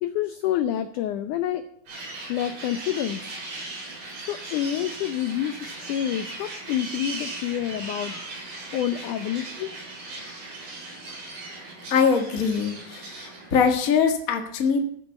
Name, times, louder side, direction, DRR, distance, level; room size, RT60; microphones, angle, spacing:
voice 1, 0.0-1.6 2.3-3.2 4.3-8.1 8.7-9.7, left 11 dB, 85° left, 10 dB, 1.7 m, -28 dB
sound 1, 1.9-13.7, right 2 dB, 70° right, 7.2 m, -38 dB
voice 2, 11.9-14.8, left 6 dB, 55° left, 4 dB, 0.9 m, -22 dB
14.0 x 6.8 x 7.9 m, 0.66 s
omnidirectional pair, 4.5 m